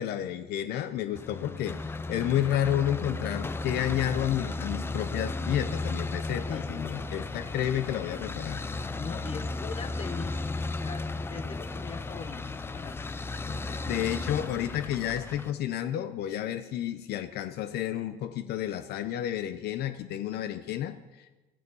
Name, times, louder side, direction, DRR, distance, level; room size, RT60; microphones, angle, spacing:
voice 1, 0.0-1.8 2.1-8.6 13.9-21.4, left 11 dB, 65° left, 11 dB, 0.8 m, -31 dB
sound 1, 1.2-15.5, left 3 dB, 15° left, 0.5 m, -35 dB
voice 2, 9.0-13.0 13.4-13.8, left 6 dB, 30° left, 10 dB, 1.2 m, -41 dB
16.5 x 14.0 x 5.5 m, 1.1 s
cardioid pair, 150°, 18 cm